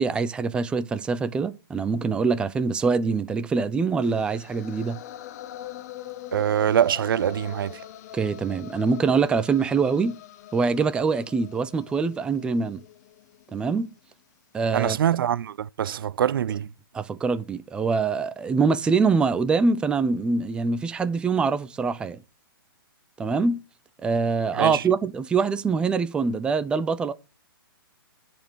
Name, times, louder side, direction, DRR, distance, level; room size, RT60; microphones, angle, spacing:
voice 1, 0.0-5.0 8.1-10.2 10.5-12.8 13.5-13.9 14.5-15.0 16.9-22.2 23.2-23.6 24.0-27.1, right 4 dB, 10° right, 0.5 m, -24 dB
sound 1, 4.0-14.1, left 12 dB, 45° left, 0.7 m, -43 dB
voice 2, 6.3-7.8 14.7-16.7 24.5-24.8, right 9 dB, 65° right, 0.4 m, -24 dB
10.0 x 4.4 x 6.1 m
hypercardioid pair, 145°, 12 cm